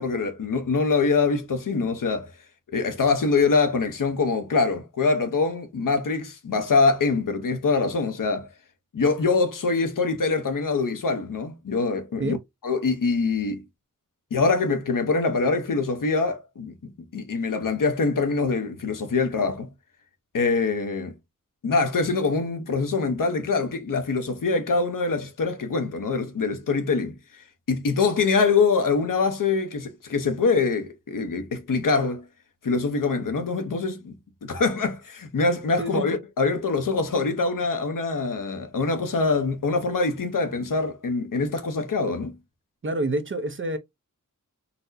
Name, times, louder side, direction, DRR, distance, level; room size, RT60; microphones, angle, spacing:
voice 1, 0.0-2.3 2.7-8.5 8.9-12.4 12.6-13.6 14.3-19.7 20.3-21.1 21.6-32.2 32.6-42.4, left 4 dB, 80° left, 0.8 m, -24 dB
voice 2, 35.8-36.1 42.8-43.8, right 2 dB, 40° right, 0.6 m, -27 dB
4.1 x 2.1 x 2.6 m
wide cardioid pair, 100°, 32 cm